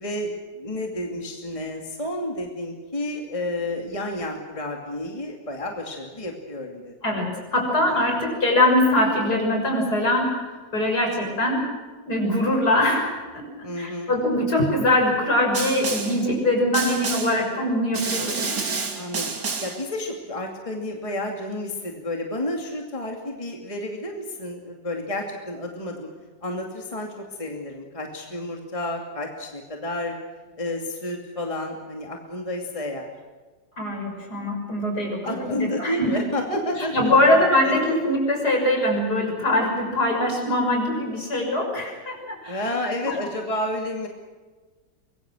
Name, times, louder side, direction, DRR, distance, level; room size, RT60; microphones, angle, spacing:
voice 1, 0.0-6.9 7.7-8.1 13.6-14.1 18.9-19.3 19.6-26.1 26.4-30.1 30.6-33.1 35.2-37.7 42.5-44.1, left 1 dB, 20° left, 1 dB, 2.6 m, -31 dB
voice 2, 7.0-10.4 10.7-11.7 12.1-13.4 13.8-18.6 33.8-36.2 36.5-42.7 43.0-43.2, left 1 dB, 55° left, 1 dB, 6.9 m, -22 dB
Snare drum, 15.5-16.2 16.7-17.4 17.9-19.8, right 4 dB, 60° right, 3.1 m, -29 dB
25.0 x 22.5 x 6.3 m, 1.4 s
omnidirectional pair, 2.0 m